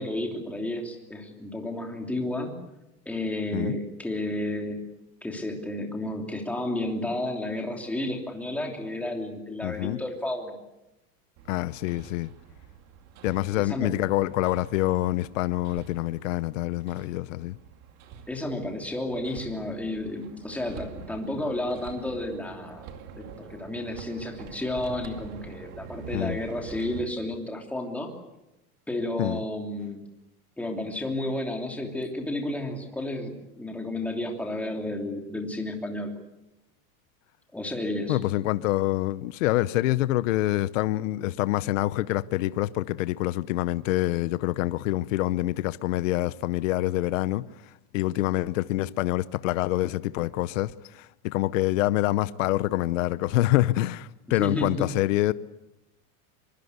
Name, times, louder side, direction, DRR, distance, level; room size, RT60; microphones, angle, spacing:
voice 1, 0.0-2.6 3.0-4.8 5.2-10.6 13.6-13.9 18.3-22.9 23.2-28.1 28.9-30.0 30.6-36.1 37.5-38.2 54.3-54.9, left 1 dB, 5° left, 3.0 m, -32 dB
voice 2, 9.6-10.0 11.5-12.3 13.2-17.6 26.1-26.4 29.2-29.4 38.1-47.4 47.9-55.3, left 16 dB, 60° left, 0.9 m, -26 dB
Hammer, 11.4-27.0, right 6 dB, 35° right, 2.4 m, -45 dB
24.5 x 24.0 x 8.2 m
supercardioid pair, 165°, 44 cm